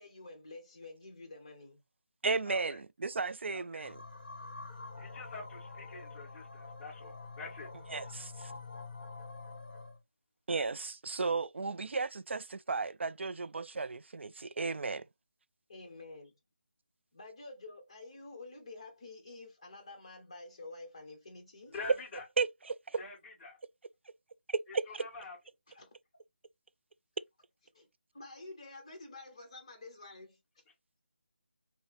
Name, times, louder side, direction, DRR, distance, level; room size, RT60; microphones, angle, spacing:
voice 1, 0.0-1.8 8.1-8.2 8.5-8.6 15.7-16.3 17.1-21.7 25.7-25.9 27.7-27.9 28.1-30.6, left 2 dB, 30° left, 1.1 m, -49 dB
voice 2, 2.2-4.0 7.9-8.5 10.5-15.0 22.4-23.0 24.5-25.0, right 4 dB, 90° right, 0.4 m, -34 dB
voice 3, 3.5-3.8 5.0-7.7 21.7-22.2 23.0-23.6 25.0-25.4, left 3 dB, 15° left, 1.5 m, -46 dB
sound 1, 3.8-10.0, left 3 dB, 50° left, 1.5 m, -47 dB
5.4 x 2.1 x 3.0 m
figure-of-eight pair, 180°, 6 cm